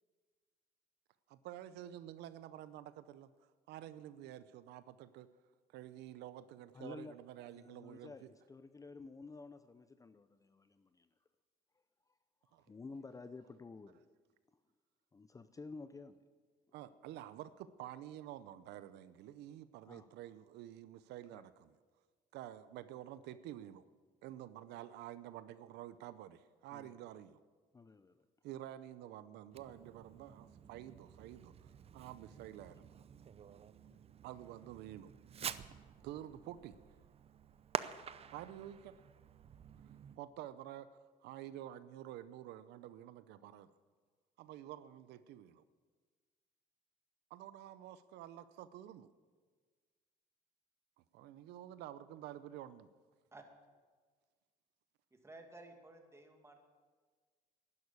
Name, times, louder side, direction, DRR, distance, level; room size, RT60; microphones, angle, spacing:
voice 1, 1.3-3.3 3.7-5.3 5.7-8.3 12.5-12.6 16.7-17.5 17.8-21.8 22.3-23.8 24.2-27.4 28.4-32.9 34.2-35.1 36.0-36.7 38.3-38.9 40.2-40.9 41.2-43.7 44.4-45.6 47.3-49.1 51.1-52.9, right 12 dB, 85° right, 14 dB, 0.7 m, -49 dB
voice 2, 6.7-7.1 7.5-11.1 12.5-14.1 15.1-16.2 19.9-20.1 21.3-21.4 26.7-26.9 27.7-28.3 33.9-34.0, left 3 dB, 20° left, 11 dB, 0.6 m, -52 dB
Fireworks, 29.5-40.2, right 8 dB, 35° right, 0.6 m, -48 dB
voice 3, 55.1-56.6, right 2 dB, 15° right, 4 dB, 2.2 m, -55 dB
11.5 x 11.0 x 8.4 m, 1.5 s
cardioid pair, 110°, 17 cm